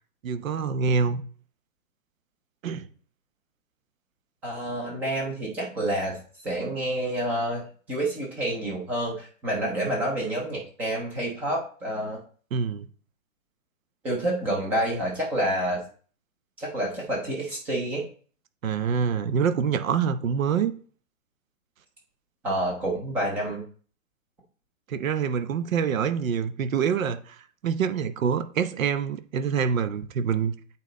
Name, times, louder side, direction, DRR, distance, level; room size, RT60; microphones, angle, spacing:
voice 1, 0.2-1.2 2.6-2.9 12.5-12.9 18.6-20.7 24.9-30.5, right 6 dB, 80° right, 0.9 m, -26 dB
voice 2, 4.4-6.2 6.4-7.6 7.9-12.2 14.0-15.8 16.6-18.0 22.4-23.6, right 1 dB, 5° right, 0.4 m, -28 dB
8.5 x 4.1 x 3.8 m
hypercardioid pair, 150°, 40 cm